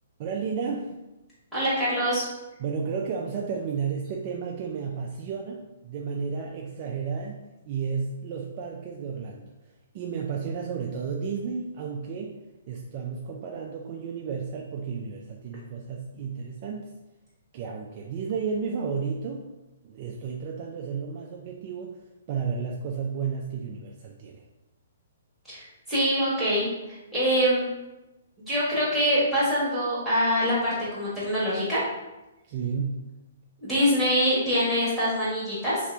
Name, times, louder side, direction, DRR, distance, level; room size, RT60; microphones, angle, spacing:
voice 1, 0.2-0.9 2.6-9.4 9.9-12.4 12.7-16.9 17.5-19.5 19.8-21.9 22.3-24.4 32.5-33.0, right 6 dB, 35° right, 0 dB, 0.3 m, -32 dB
voice 2, 1.5-2.2 25.5-27.7 28.5-31.8 33.6-35.8, equal, ahead, -11 dB, 1.4 m, -24 dB
3.1 x 2.9 x 3.3 m, 1.0 s
hypercardioid pair, 155°, 0 cm